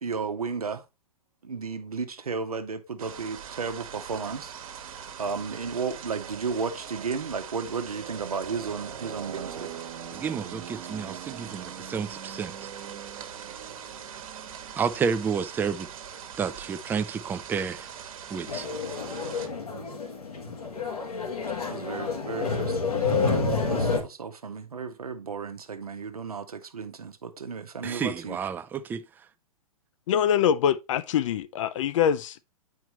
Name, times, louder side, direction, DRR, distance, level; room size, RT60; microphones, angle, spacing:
voice 1, 0.0-0.8 1.4-4.5 5.2-9.7 21.7-23.4 23.7-28.4, right 5 dB, 90° right, 0.9 m, -34 dB
sound 1, 3.0-19.5, right 8 dB, 65° right, 1.2 m, -41 dB
voice 2, 10.1-12.5 14.8-15.9 16.4-17.9 18.3-18.7 27.8-29.0, right 6 dB, 10° right, 0.3 m, -30 dB
sound 2, 18.5-24.0, left 4 dB, 85° left, 1.7 m, -29 dB
voice 3, 30.1-32.5, left 9 dB, 60° left, 0.5 m, -24 dB
8.1 x 4.6 x 3.0 m
hypercardioid pair, 115°, 19 cm